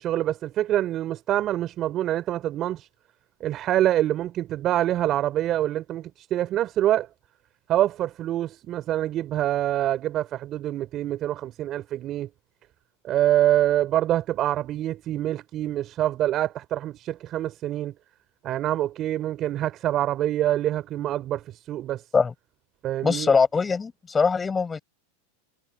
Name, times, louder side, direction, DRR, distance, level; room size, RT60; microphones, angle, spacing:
voice 1, 0.0-2.9 3.4-7.1 7.7-12.3 13.0-17.9 18.4-22.0 22.8-23.3, right 13 dB, 40° right, 4.3 m, -25 dB
voice 2, 23.0-24.8, left 5 dB, 20° left, 6.8 m, -22 dB
hypercardioid pair, 105°, 0 cm